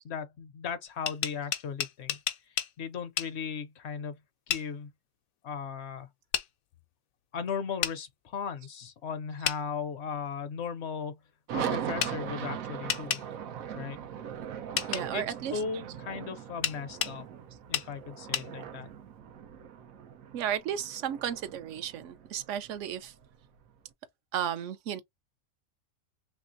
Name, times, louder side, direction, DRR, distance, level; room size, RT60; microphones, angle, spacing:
voice 1, 0.0-2.2 2.5-4.2 4.5-4.9 5.4-6.1 7.3-11.2 11.5-13.2 13.7-14.0 14.9-17.3 17.7-18.9, left 6 dB, 65° left, 0.8 m, -37 dB
sound 1, 0.9-2.7 3.2-3.3 4.5-4.7 6.3-6.5 7.8-8.0 9.4-9.6 12.0-12.1 12.9-13.2 14.8-15.0 16.6-17.2 17.7-17.9 18.3-18.5, left 10 dB, 85° left, 1.0 m, -31 dB
sound 2, 11.5-23.7, right 8 dB, 90° right, 1.1 m, -40 dB
voice 2, 14.9-15.6 20.3-23.1 24.3-25.0, right 9 dB, 70° right, 0.9 m, -34 dB
3.2 x 3.1 x 2.5 m
omnidirectional pair, 1.4 m